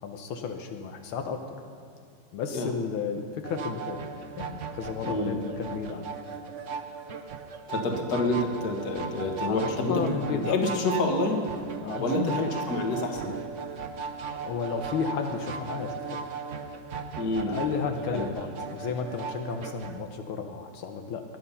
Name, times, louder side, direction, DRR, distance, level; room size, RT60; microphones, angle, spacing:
voice 1, 0.0-1.6 2.3-4.0 4.4-6.1 9.5-10.6 11.8-12.5 14.4-16.3 17.4-21.2, left 6 dB, 85° left, 5 dB, 1.8 m, -33 dB
sound 1, 3.4-20.0, right 5 dB, 60° right, 0.8 m, -37 dB
voice 2, 5.0-5.4 7.7-11.4 12.0-13.4 17.2-17.6 18.1-18.3, left 2 dB, 50° left, 2 dB, 2.0 m, -28 dB
20.5 x 10.5 x 5.6 m, 2.4 s
omnidirectional pair, 2.3 m